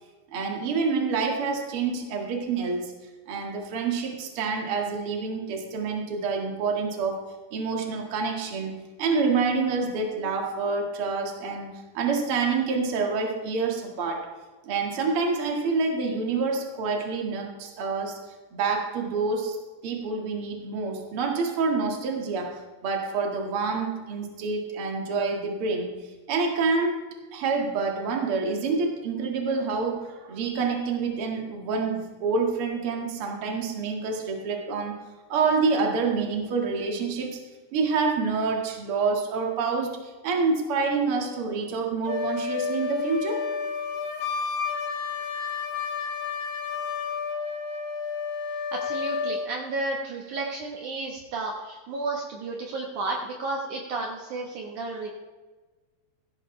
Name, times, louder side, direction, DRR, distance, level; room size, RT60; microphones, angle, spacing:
voice 1, 0.3-2.9 3.3-7.2 7.5-8.7 9.0-14.3 14.6-18.2 18.5-25.9 26.3-27.0 27.3-34.9 35.3-37.4 37.7-40.0 40.2-43.5, right 4 dB, 60° right, 2 dB, 1.4 m, -27 dB
Wind instrument woodwind instrument, 42.0-49.5, left 5 dB, 70° left, 1.8 m, -31 dB
voice 2, 48.7-55.1, right 3 dB, 90° right, 1 dB, 1.7 m, -32 dB
16.0 x 13.0 x 3.3 m, 1.3 s
omnidirectional pair, 5.6 m